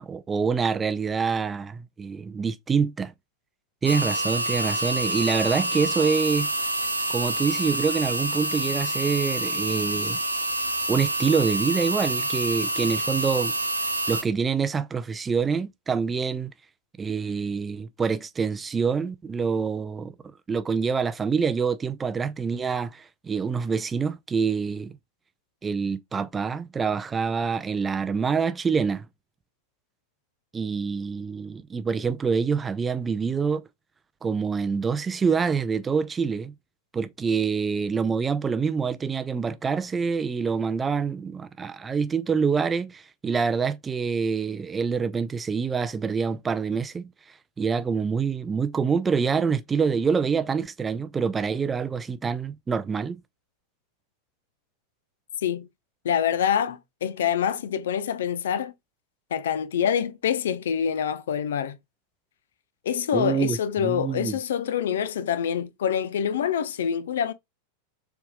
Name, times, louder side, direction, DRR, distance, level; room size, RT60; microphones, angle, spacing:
voice 1, 0.0-3.1 3.8-6.5 7.1-10.2 10.9-13.5 14.1-16.5 17.0-20.1 20.5-24.9 25.6-29.1 30.5-33.6 34.2-36.5 36.9-47.1 47.6-53.2 63.1-64.4, right 5 dB, 15° right, 0.4 m, -26 dB
sound 1, 3.8-14.2, right 1 dB, 80° right, 0.8 m, -27 dB
voice 2, 56.0-58.7 59.3-61.8 62.8-67.3, left 8 dB, 60° left, 0.5 m, -26 dB
6.7 x 3.5 x 2.2 m
figure-of-eight pair, 90°, 0 cm